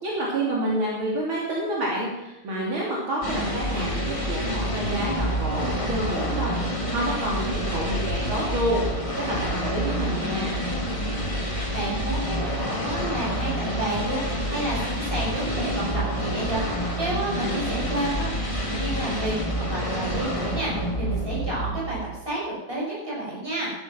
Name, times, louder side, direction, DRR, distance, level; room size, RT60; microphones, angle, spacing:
voice 1, 0.0-6.5 6.9-8.9 9.2-10.6 17.3-17.6, right 1 dB, 70° right, -5 dB, 3.8 m, -28 dB
sound 1, 3.2-22.2, equal, 15° left, 2.2 m, -28 dB
voice 2, 11.7-18.3 18.7-19.3 19.7-22.0 22.2-22.4 22.7-23.7, right 1 dB, 25° right, -5 dB, 6.7 m, -30 dB
13.0 x 12.0 x 6.1 m, 0.98 s
omnidirectional pair, 2.3 m